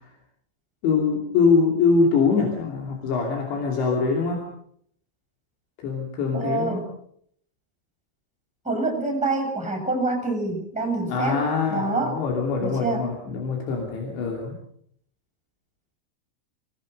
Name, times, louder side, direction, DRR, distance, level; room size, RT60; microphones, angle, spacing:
voice 1, 0.8-4.5 5.8-6.8 11.1-14.6, left 4 dB, 85° left, 1 dB, 5.1 m, -23 dB
voice 2, 6.3-6.9 8.6-11.4 11.7-12.2 12.6-13.1, right 2 dB, ahead, 4 dB, 6.7 m, -26 dB
25.5 x 18.5 x 6.5 m, 0.67 s
omnidirectional pair, 4.9 m